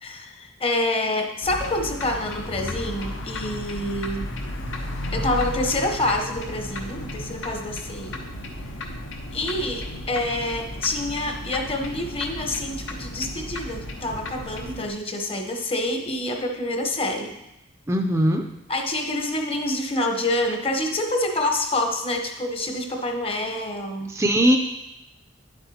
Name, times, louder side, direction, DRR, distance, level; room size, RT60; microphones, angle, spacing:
voice 1, 0.0-4.3 5.1-8.2 9.3-17.3 18.7-24.1, left 1 dB, 30° left, 3 dB, 0.9 m, -27 dB
sound 1, 1.4-14.9, left 1 dB, 80° left, 1.0 m, -34 dB
voice 2, 17.9-18.4 24.1-24.6, equal, 15° right, 3 dB, 0.4 m, -19 dB
9.9 x 7.9 x 2.8 m, 0.90 s
head